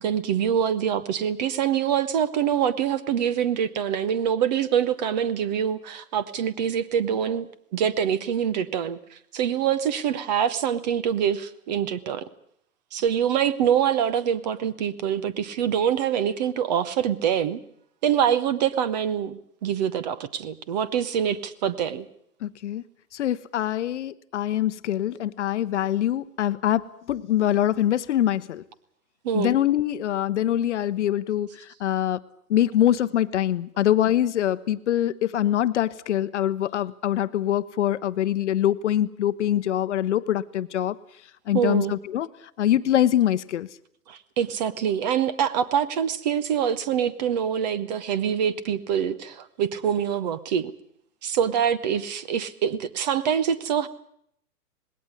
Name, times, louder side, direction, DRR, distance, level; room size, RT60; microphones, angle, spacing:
voice 1, 0.0-12.2 12.9-17.6 18.0-22.1 29.2-29.5 41.5-41.9 44.1-50.7 51.2-53.9, right 8 dB, 30° right, 16 dB, 0.8 m, -25 dB
voice 2, 22.4-22.8 23.1-28.6 29.3-32.2 32.5-41.0 41.5-42.3 42.6-43.7, left 12 dB, 50° left, 14 dB, 0.9 m, -24 dB
19.5 x 17.0 x 9.6 m, 0.71 s
hypercardioid pair, 140°, 47 cm